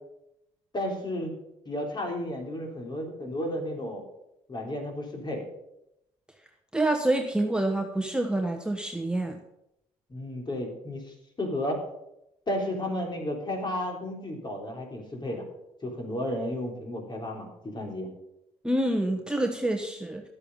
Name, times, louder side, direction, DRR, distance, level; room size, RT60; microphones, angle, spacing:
voice 1, 0.7-1.3 1.6-4.0 4.5-5.4 10.1-11.0 11.4-11.8 12.5-15.4 15.8-18.1, left 1 dB, 30° left, 1 dB, 3.4 m, -32 dB
voice 2, 6.7-9.4 18.6-20.2, right 1 dB, 5° right, 3 dB, 1.2 m, -27 dB
11.5 x 8.2 x 5.3 m, 0.83 s
supercardioid pair, 65°, 14 cm